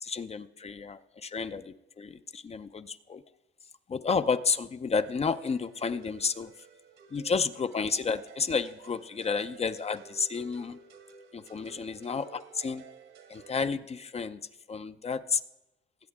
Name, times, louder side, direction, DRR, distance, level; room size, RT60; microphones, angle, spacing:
voice 1, 0.0-3.2 3.9-6.5 7.1-10.8 11.3-12.9 13.3-14.4 14.7-15.4, left 5 dB, 30° left, 11 dB, 0.6 m, -31 dB
sound 1, 4.9-13.7, right 7 dB, 75° right, 1.8 m, -53 dB
20.0 x 8.6 x 3.6 m, 0.96 s
cardioid pair, 90°, 20 cm